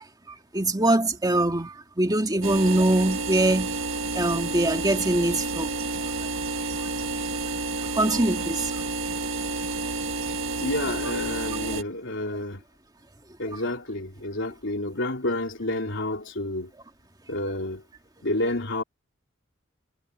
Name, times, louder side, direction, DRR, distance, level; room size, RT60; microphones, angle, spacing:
voice 1, 0.5-3.8 4.2-5.7 7.9-8.7, right 1 dB, 20° right, 2.4 m, -23 dB
sound 1, 2.4-11.8, right 3 dB, 85° right, 1.7 m, -30 dB
voice 2, 10.6-12.6 13.4-16.7 17.3-17.8 18.2-18.8, left 1 dB, 65° left, 3.6 m, -29 dB
head